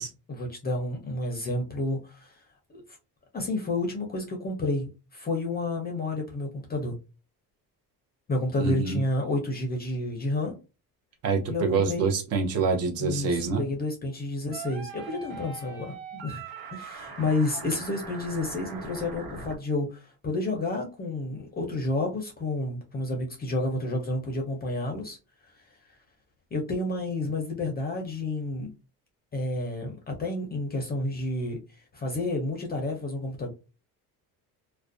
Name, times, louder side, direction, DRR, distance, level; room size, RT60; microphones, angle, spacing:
voice 1, 0.0-2.4 2.7-2.8 3.3-7.0 8.3-10.5 11.5-12.1 13.0-16.4 16.7-25.2 26.5-28.7 29.3-33.5, left 2 dB, 25° left, 2 dB, 0.5 m, -30 dB
voice 2, 8.6-9.0 11.2-13.6, right 4 dB, 40° right, 3 dB, 0.6 m, -26 dB
sound 1, 14.5-19.6, right 4 dB, 80° right, 1.0 m, -41 dB
2.4 x 2.1 x 2.4 m, 0.31 s
cardioid pair, 140°, 37 cm